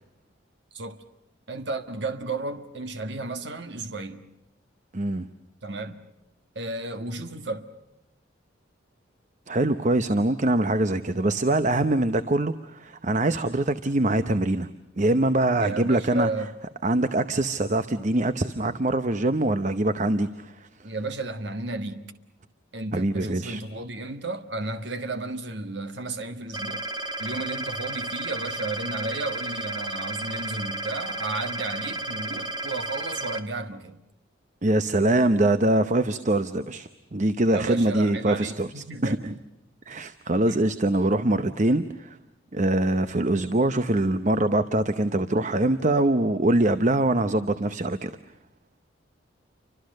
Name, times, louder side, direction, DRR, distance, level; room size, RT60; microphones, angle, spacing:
voice 1, 1.5-4.2 5.6-6.0 6.5-7.7 15.6-16.6 20.8-22.1 22.7-26.9 27.2-34.0 37.5-39.4 40.5-40.6, right 2 dB, 60° right, 1.5 m, -33 dB
voice 2, 4.9-5.3 9.5-14.7 15.0-16.3 16.8-20.7 22.9-23.6 34.6-39.3 39.9-42.2 42.5-48.1, right 1 dB, 40° right, 0.8 m, -23 dB
sound 1, 26.5-33.4, right 2 dB, 20° right, 1.5 m, -33 dB
30.0 x 25.5 x 6.5 m
head